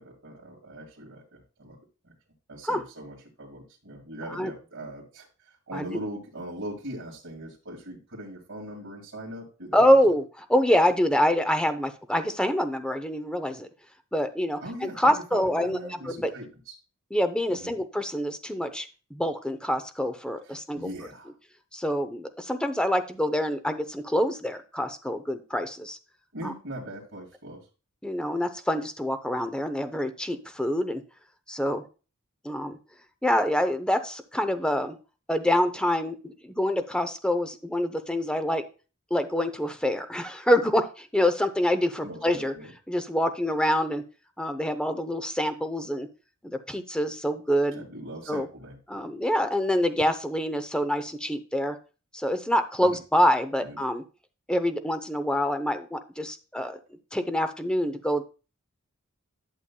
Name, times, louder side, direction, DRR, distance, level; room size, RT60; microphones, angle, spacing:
voice 1, 0.0-1.8 2.0-2.1 2.5-9.8 14.6-16.7 17.5-17.7 20.4-21.3 26.3-27.7 42.0-42.7 47.7-49.0 52.8-53.0 53.6-53.8, right 1 dB, 65° right, -7 dB, 2.2 m, -41 dB
voice 2, 9.7-13.7 14.1-15.8 16.0-16.3 17.1-20.9 21.7-26.0 26.4-26.5 28.0-31.0 31.5-31.8 32.4-32.8 33.2-35.0 35.3-38.6 39.1-42.5 42.9-44.0 44.4-46.1 46.4-47.8 48.3-48.5 48.9-51.8 52.1-54.0 54.5-56.8 57.1-58.2, equal, 5° left, 9 dB, 0.7 m, -26 dB
11.0 x 7.0 x 2.3 m, 0.33 s
head